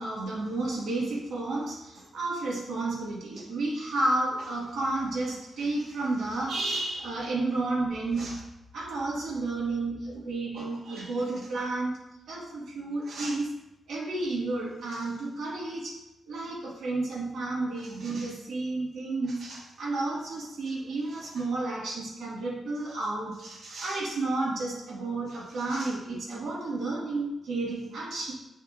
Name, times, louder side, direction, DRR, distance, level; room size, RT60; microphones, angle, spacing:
voice 1, 0.0-8.5 8.7-11.9 12.3-13.5 13.9-16.0 16.3-28.3, right 2 dB, 85° right, -4 dB, 2.1 m, -31 dB
6.7 x 6.5 x 2.6 m, 0.93 s
wide cardioid pair, 160°, 0 cm